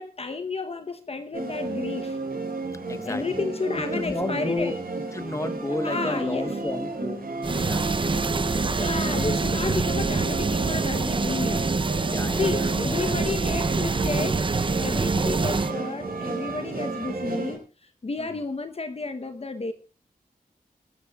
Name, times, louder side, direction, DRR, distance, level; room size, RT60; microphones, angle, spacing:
voice 1, 0.0-2.2 3.0-4.7 5.8-6.5 8.7-11.7 12.4-19.7, left 3 dB, 40° left, 8 dB, 0.9 m, -31 dB
sound 1, 1.3-17.6, right 3 dB, 80° right, 4.9 m, -32 dB
voice 2, 2.9-3.4 3.9-7.2 7.5-8.2 12.0-13.2 14.9-15.3 18.2-18.4, left 2 dB, 20° left, 10 dB, 1.2 m, -33 dB
sound 2, 7.4-15.7, right 4 dB, 35° right, 0.6 m, -26 dB
26.0 x 13.0 x 2.4 m, 0.34 s
wide cardioid pair, 120°, 15 cm